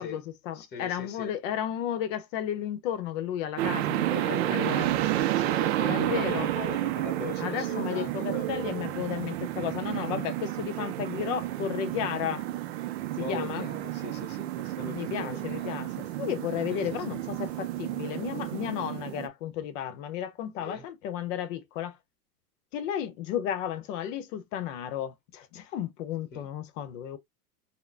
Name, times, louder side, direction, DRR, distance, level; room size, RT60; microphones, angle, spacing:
voice 1, 0.0-4.1 4.5-4.9 5.9-6.5 7.4-12.5 13.2-13.7 14.8-22.0 22.7-27.2, left 10 dB, 50° left, 0.8 m, -33 dB
voice 2, 0.5-1.3 4.1-8.5 13.2-15.8 16.7-16.9 20.6-20.8 26.3-26.5, left 4 dB, 20° left, 1.0 m, -40 dB
sound 1, 3.6-19.3, right 14 dB, 45° right, 0.4 m, -31 dB
3.8 x 2.1 x 2.5 m
hypercardioid pair, 110°, 47 cm